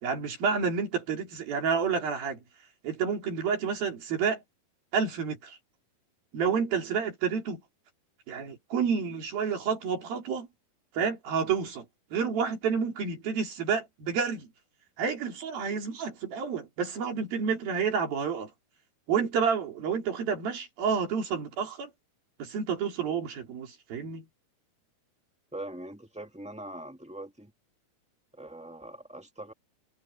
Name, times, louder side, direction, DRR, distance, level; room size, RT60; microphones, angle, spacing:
voice 1, 0.0-2.4 2.8-4.4 4.9-5.6 6.3-7.6 8.3-10.5 11.0-11.9 12.1-14.5 15.0-18.5 19.1-21.9 22.4-24.3, right 6 dB, 70° right, 5.4 m, -29 dB
voice 2, 25.5-27.5 28.3-29.5, right 1 dB, 10° right, 0.4 m, -42 dB
omnidirectional pair, 4.3 m